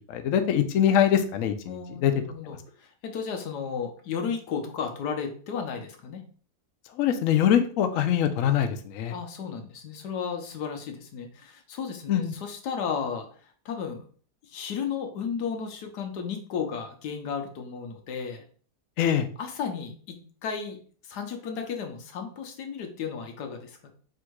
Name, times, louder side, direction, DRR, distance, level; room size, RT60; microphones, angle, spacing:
voice 1, 0.1-2.1 7.0-9.1 12.1-12.3 19.0-19.3, left 9 dB, 70° left, 8 dB, 0.8 m, -23 dB
voice 2, 1.7-6.2 9.1-14.1 14.4-18.4 19.4-20.8 21.0-23.9, left 6 dB, 85° left, 5 dB, 1.4 m, -34 dB
3.6 x 2.6 x 4.5 m, 0.43 s
omnidirectional pair, 1.7 m